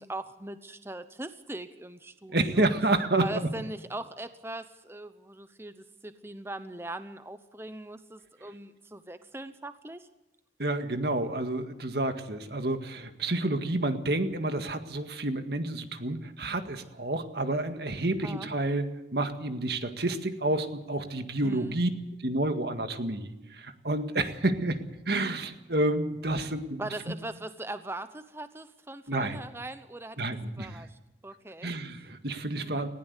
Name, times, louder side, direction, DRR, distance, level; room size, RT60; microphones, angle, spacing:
voice 1, 0.0-2.7 3.2-10.1 18.2-18.5 21.4-21.8 26.8-30.2 30.6-31.7 32.6-32.9, right 1 dB, 15° right, 11 dB, 0.8 m, -40 dB
voice 2, 2.3-3.5 10.6-18.9 19.1-21.9 22.2-26.8 29.1-29.4 30.2-30.8 31.6-32.9, right 2 dB, 60° right, 7 dB, 1.8 m, -29 dB
20.0 x 16.0 x 8.2 m, 1.0 s
head